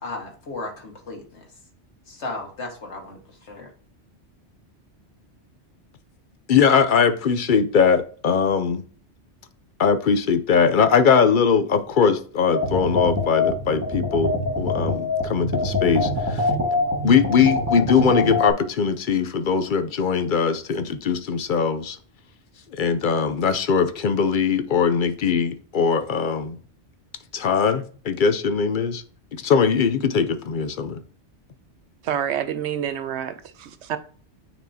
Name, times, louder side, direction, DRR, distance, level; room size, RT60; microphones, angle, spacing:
voice 1, 0.0-1.5 2.1-3.7, left 2 dB, 75° left, 1.9 m, -35 dB
voice 2, 6.5-8.8 9.8-16.4 17.0-22.0 22.8-26.6 27.3-29.0 29.4-31.0, left 6 dB, 55° left, 0.6 m, -21 dB
sound 1, 12.5-18.5, left 2 dB, 15° right, 1.7 m, -24 dB
voice 3, 32.0-34.0, right 9 dB, 75° right, 0.9 m, -28 dB
9.1 x 4.5 x 2.8 m
omnidirectional pair, 1.2 m